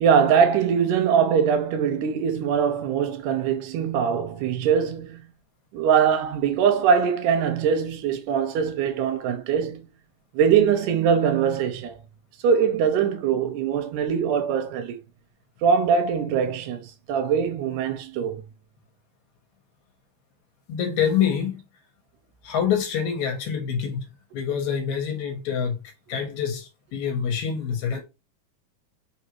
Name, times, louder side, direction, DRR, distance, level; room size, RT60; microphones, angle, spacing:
voice 1, 0.0-5.3 5.7-9.9 10.3-11.9 12.4-15.0 15.6-18.4, right 7 dB, 90° right, 2.2 m, -22 dB
voice 2, 20.7-21.6 22.4-24.1 24.3-25.8 26.1-28.0, left 7 dB, 70° left, 2.1 m, -26 dB
4.6 x 3.9 x 3.0 m
omnidirectional pair, 3.7 m